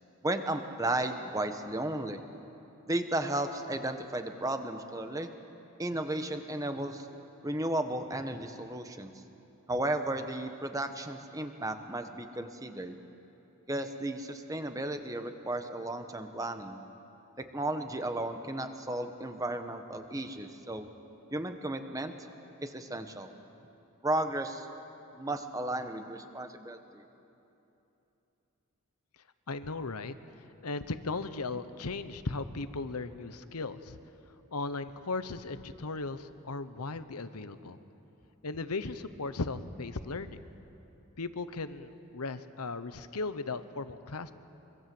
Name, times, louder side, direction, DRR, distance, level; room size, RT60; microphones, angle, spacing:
voice 1, 0.2-2.2 2.9-5.3 5.8-7.1 7.4-9.1 9.7-13.0 13.7-16.8 17.4-20.9 21.3-22.1 22.6-23.3 24.0-24.7 25.1-27.0, right 1 dB, 15° right, 7 dB, 1.2 m, -34 dB
voice 2, 29.5-30.1 30.6-34.0 34.5-37.8 38.4-40.5 41.2-44.3, left 3 dB, 90° left, 11 dB, 1.0 m, -37 dB
25.0 x 23.5 x 7.8 m, 2.9 s
head